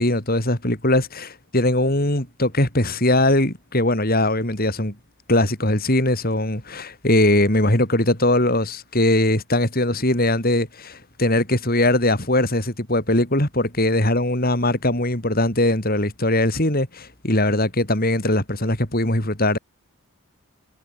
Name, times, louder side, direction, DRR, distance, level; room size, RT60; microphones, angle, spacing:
voice 1, 0.0-4.9 5.3-19.6, left 1 dB, 40° left, 4.6 m, -20 dB
head